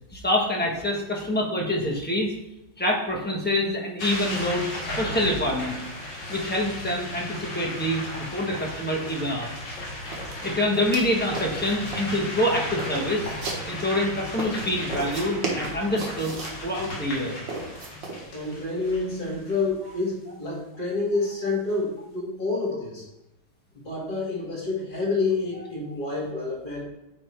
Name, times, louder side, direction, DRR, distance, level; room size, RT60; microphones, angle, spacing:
voice 1, 0.1-2.3 2.8-5.8 6.3-9.8 10.4-13.3 13.7-16.3 16.6-17.3, left 1 dB, 10° left, -3 dB, 0.7 m, -26 dB
sound 1, 4.0-19.9, left 1 dB, 65° left, 2.7 m, -35 dB
sound 2, 9.1-9.2 9.5-9.7 10.0-11.1 11.4-12.1 12.5-13.9 14.4-16.6 17.1-18.2, right 3 dB, 60° right, 1.9 m, -35 dB
voice 2, 18.3-23.0 23.7-26.8, left 3 dB, 25° left, -5 dB, 2.4 m, -28 dB
9.1 x 3.7 x 4.5 m, 0.88 s
omnidirectional pair, 2.3 m